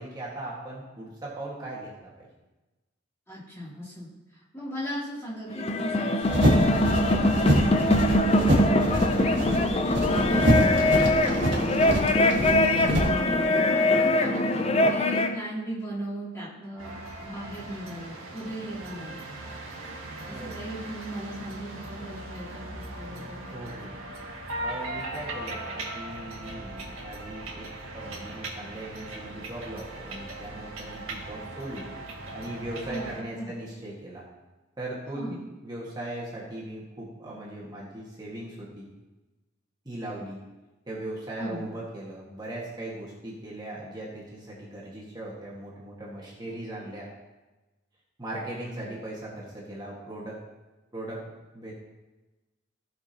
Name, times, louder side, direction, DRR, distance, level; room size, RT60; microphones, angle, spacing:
voice 1, 0.0-2.3 14.0-14.3 20.3-20.6 23.5-23.9 24.6-27.7 27.9-31.9 32.3-34.2 34.8-35.4 35.6-38.9 39.9-40.4 40.9-47.1 48.2-50.4 50.9-51.2 51.5-51.7, right 1 dB, 20° right, -5 dB, 1.7 m, -39 dB
voice 2, 3.3-13.6 14.0-19.1 20.3-22.6 22.9-23.4 32.9-33.5 35.1-35.4 41.4-41.6, equal, 15° left, -9 dB, 2.8 m, -37 dB
sound 1, 5.5-15.3, left 1 dB, 30° left, 0.5 m, -23 dB
sound 2, 6.2-13.1, equal, 60° right, 1.8 m, -25 dB
sound 3, 16.8-33.2, right 2 dB, 85° right, 1.8 m, -39 dB
15.5 x 6.1 x 2.9 m, 1.1 s
head